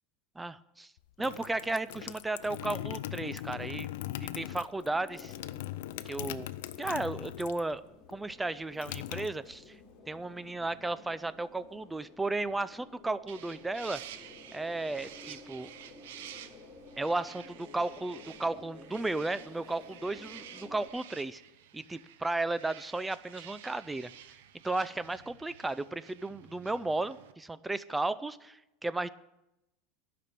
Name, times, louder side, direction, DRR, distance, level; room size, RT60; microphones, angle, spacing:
voice 1, 0.4-0.9 1.2-3.9 4.2-5.3 6.1-6.5 6.8-7.8 8.1-9.8 10.1-14.0 14.5-15.7 17.0-21.4 21.7-24.1 24.6-29.1, right 2 dB, 10° right, 16 dB, 0.4 m, -34 dB
sound 1, 1.0-7.8 8.0-9.9, left 14 dB, 80° left, 0.5 m, -40 dB
sound 2, 4.8-20.9, left 3 dB, 15° left, 2.9 m, -54 dB
sound 3, 13.3-27.3, right 10 dB, 85° right, 0.8 m, -51 dB
11.0 x 5.9 x 8.5 m, 0.91 s
supercardioid pair, 130°, 0 cm